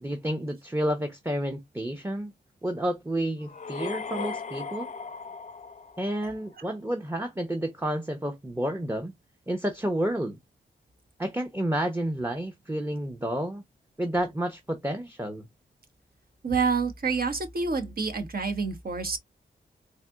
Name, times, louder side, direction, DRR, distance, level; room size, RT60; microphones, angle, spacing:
voice 1, 0.0-2.3 2.6-4.9 6.0-9.1 9.5-10.4 11.2-13.6 14.0-15.5, right 1 dB, 10° right, 0.8 m, -30 dB
sound 1, 3.4-6.5, left 4 dB, 40° left, 0.6 m, -37 dB
voice 2, 16.4-19.2, right 4 dB, 50° right, 1.1 m, -28 dB
4.1 x 2.6 x 2.4 m
cardioid pair, 60°, 19 cm